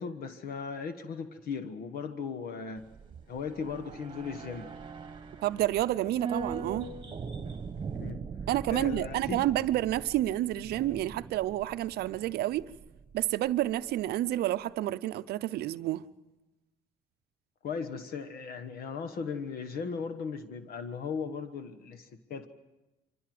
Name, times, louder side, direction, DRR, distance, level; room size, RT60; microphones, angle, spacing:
voice 1, 0.0-2.9 3.3-4.7 7.9-8.2 8.7-9.4 17.6-22.5, left 5 dB, 65° left, 1.3 m, -37 dB
sound 1, 2.8-13.2 13.5-13.6, right 5 dB, 30° right, 1.4 m, -41 dB
voice 2, 5.4-6.9 8.5-12.7 13.1-16.1, right 14 dB, 70° right, 0.6 m, -29 dB
24.5 x 16.0 x 7.7 m
cardioid pair, 110°, 17 cm